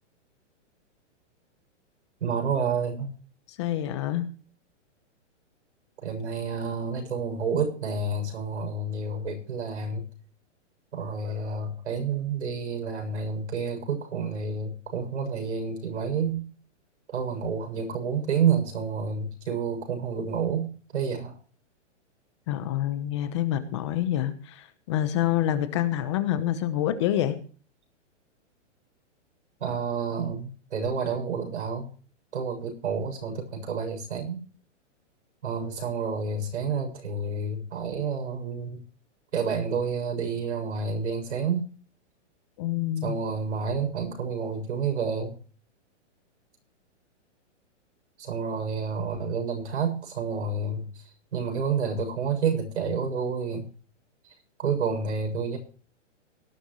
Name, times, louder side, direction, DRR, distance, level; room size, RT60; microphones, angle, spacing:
voice 1, 2.2-3.1 6.0-10.0 10.9-16.4 17.1-21.4 29.6-31.9 32.3-34.4 35.4-38.8 39.3-41.7 43.0-45.3 48.2-50.9 51.3-53.7 54.6-55.6, right 5 dB, 70° right, 4 dB, 7.3 m, -29 dB
voice 2, 3.5-4.3 22.5-27.4 42.6-43.2, left 12 dB, 25° left, 10 dB, 1.0 m, -27 dB
18.0 x 12.5 x 3.2 m, 0.40 s
hypercardioid pair, 175°, 37 cm